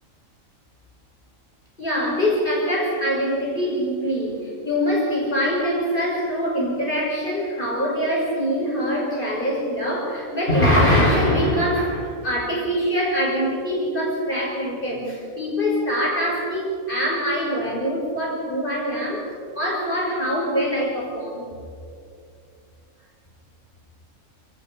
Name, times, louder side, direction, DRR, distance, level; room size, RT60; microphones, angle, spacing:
voice 1, 1.8-19.3 19.5-21.5, equal, 40° left, -3 dB, 6.5 m, -23 dB
30.0 x 18.5 x 5.6 m, 2.4 s
omnidirectional pair, 1.4 m